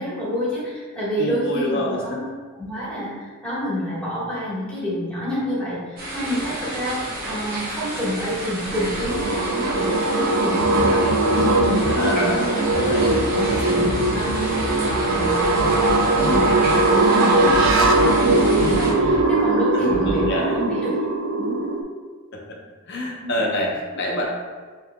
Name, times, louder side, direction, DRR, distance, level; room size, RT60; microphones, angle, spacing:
voice 1, 0.0-2.2 2.6-13.0 13.3-20.9 21.3-21.6 23.2-23.5, equal, 5° left, -9 dB, 1.4 m, -28 dB
voice 2, 1.2-2.2 11.9-12.4 12.9-13.1 17.1-17.5 19.7-20.5 22.3-22.6 22.9-24.3, left 1 dB, 50° left, -1 dB, 0.7 m, -26 dB
sound 1, 6.0-18.9, right 1 dB, 40° right, 0.9 m, -30 dB
sound 2, 8.7-21.8, right 2 dB, 65° right, 0.4 m, -20 dB
sound 3, 10.6-11.9 12.7-16.7 17.5-19.1 19.9-20.2, equal, 80° right, 0.9 m, -29 dB
5.5 x 3.1 x 2.2 m, 1.4 s
head